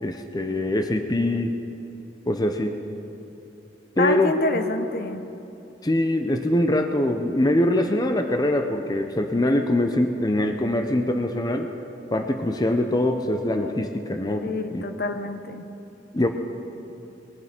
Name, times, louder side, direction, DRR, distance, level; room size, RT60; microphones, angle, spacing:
voice 1, 0.0-1.5 2.3-2.8 4.0-4.3 5.8-11.7 12.1-14.8 16.1-16.3, left 1 dB, 20° left, 6 dB, 0.7 m, -23 dB
voice 2, 4.0-5.2 14.4-15.6, left 3 dB, 55° left, 8 dB, 0.8 m, -27 dB
21.0 x 9.5 x 6.0 m, 2.9 s
head